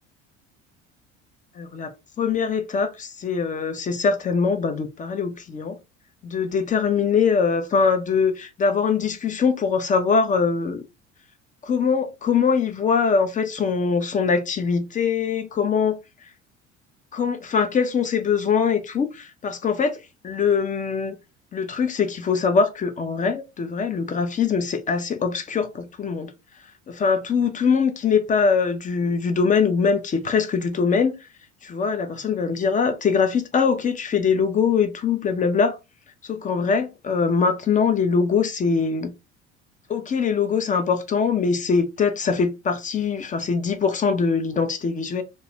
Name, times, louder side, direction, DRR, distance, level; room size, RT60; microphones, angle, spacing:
voice 1, 1.6-5.8 6.2-10.8 11.6-16.0 17.1-20.0 20.2-21.2 21.5-26.3 26.9-31.1 31.6-35.8 36.3-39.1 39.9-45.2, left 5 dB, 20° left, 0.4 m, -22 dB
2.2 x 2.1 x 2.8 m
hypercardioid pair, 65°, 36 cm